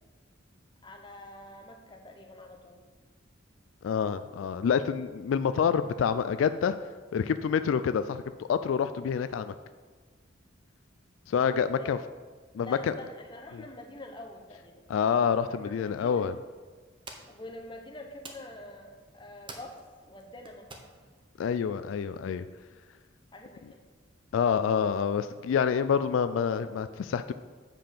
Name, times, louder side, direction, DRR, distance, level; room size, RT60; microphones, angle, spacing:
voice 1, 0.8-2.9 11.7-11.9 12.6-14.9 15.4-16.3 17.3-19.8 20.1-20.9 23.3-23.8, left 1 dB, 25° left, 3 dB, 0.9 m, -46 dB
voice 2, 3.8-6.8 7.1-9.5 11.3-12.0 12.5-12.9 14.9-16.3 21.4-22.5 24.3-27.3, left 7 dB, 75° left, 12 dB, 0.3 m, -27 dB
sound 1, 16.2-21.4, right 3 dB, 25° right, 0.8 m, -51 dB
7.5 x 5.1 x 5.8 m, 1.5 s
head